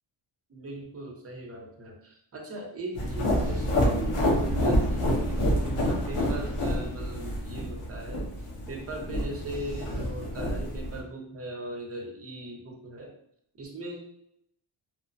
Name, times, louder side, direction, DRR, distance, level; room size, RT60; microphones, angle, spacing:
voice 1, 0.5-8.3 8.7-13.1 13.6-14.0, right 1 dB, 30° right, 0 dB, 0.7 m, -39 dB
sound 1, 2.9-11.0, equal, 85° left, 0.9 m, -28 dB
3.0 x 2.0 x 2.5 m, 0.74 s
cardioid pair, 95°, 49 cm